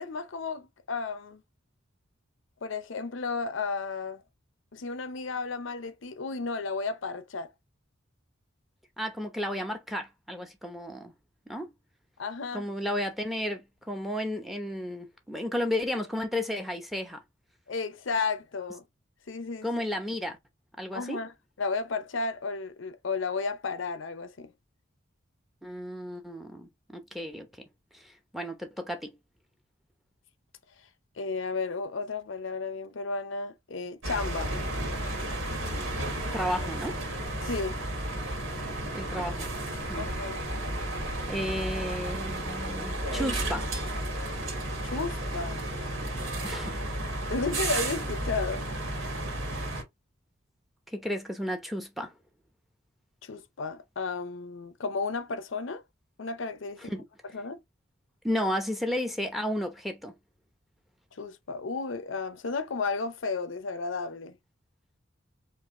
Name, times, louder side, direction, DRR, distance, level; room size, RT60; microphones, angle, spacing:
voice 1, 0.0-1.4 2.6-4.2 4.7-7.5 12.2-12.7 17.7-18.8 19.3-19.7 20.9-21.3 21.6-24.5 31.2-34.5 37.4-37.8 40.0-40.4 44.8-45.6 47.3-48.7 53.2-55.8 56.2-56.9 57.3-57.6 61.2-64.4, left 4 dB, 70° left, 0.6 m, -33 dB
voice 2, 9.0-11.1 11.5-11.7 12.5-17.2 19.6-20.4 20.8-21.2 25.6-27.7 27.9-29.2 35.9-36.0 36.3-37.0 38.9-39.5 39.9-40.1 41.3-43.7 46.4-46.8 50.9-52.1 56.8-57.0 57.3-57.4 58.2-60.1, equal, ahead, 0.8 m, -33 dB
sound 1, 34.0-49.8, right 1 dB, 75° right, 1.8 m, -33 dB
4.8 x 2.5 x 3.6 m
head